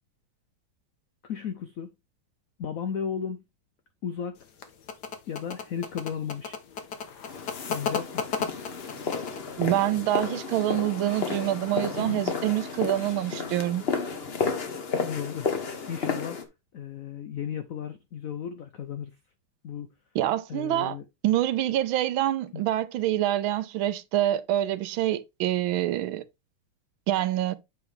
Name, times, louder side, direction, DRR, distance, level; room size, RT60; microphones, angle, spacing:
voice 1, 1.2-1.9 2.6-3.4 4.0-4.4 5.3-6.6 7.6-8.3 15.0-16.4 16.7-19.1 19.6-19.9 20.5-21.0 22.5-22.6, left 8 dB, 85° left, 0.7 m, -34 dB
sound 1, 4.4-9.5, left 6 dB, 60° left, 1.5 m, -34 dB
sound 2, 7.3-16.5, left 5 dB, 40° left, 0.9 m, -32 dB
voice 2, 9.6-13.9 20.1-21.0 21.2-26.2 27.1-27.5, right 13 dB, 80° right, 1.4 m, -26 dB
8.3 x 4.8 x 3.4 m
omnidirectional pair, 2.3 m